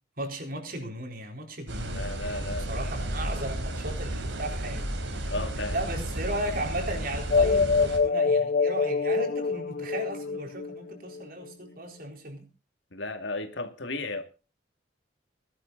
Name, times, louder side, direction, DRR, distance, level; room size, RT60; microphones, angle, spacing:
voice 1, 0.2-2.4 2.7-5.3 5.7-12.5, right 1 dB, 50° right, 4.2 m, -36 dB
sound 1, 1.7-8.0, right 1 dB, 85° right, 4.2 m, -33 dB
voice 2, 1.9-2.8 5.3-5.8 12.9-14.2, left 2 dB, 75° left, 2.6 m, -34 dB
sound 2, 7.3-11.2, left 4 dB, 55° left, 0.7 m, -25 dB
19.0 x 12.5 x 4.1 m
head